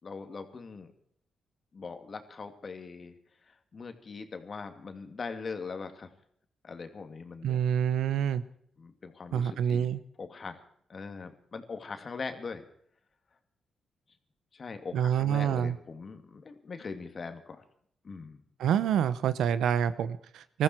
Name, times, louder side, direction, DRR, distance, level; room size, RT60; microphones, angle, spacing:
voice 1, 0.0-0.9 1.7-3.1 3.4-6.1 6.6-7.6 8.8-9.9 10.2-10.6 10.9-12.6 14.5-17.6 18.0-18.4, left 4 dB, 50° left, 7 dB, 2.5 m, -41 dB
voice 2, 7.4-8.4 9.3-10.0 14.9-15.7 18.6-20.6, right 9 dB, 85° right, 15 dB, 0.8 m, -27 dB
20.5 x 14.0 x 4.5 m, 0.65 s
supercardioid pair, 60°, 0 cm